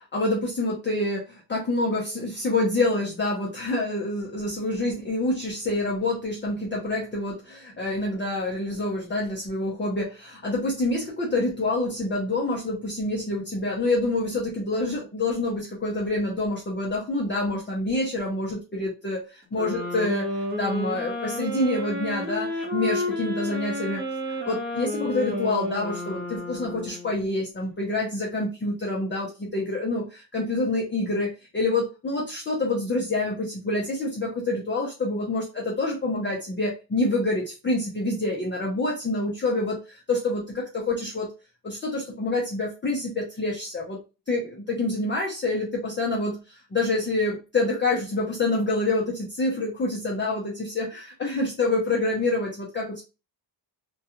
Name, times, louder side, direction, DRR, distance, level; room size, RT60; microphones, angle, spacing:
voice 1, 0.1-41.3 41.6-44.0 44.3-53.0, left 2 dB, 25° left, -3 dB, 0.5 m, -27 dB
sound 1, 19.5-27.2, left 1 dB, 20° right, 1.0 m, -31 dB
2.3 x 2.3 x 2.8 m, 0.30 s
wide cardioid pair, 140°, 46 cm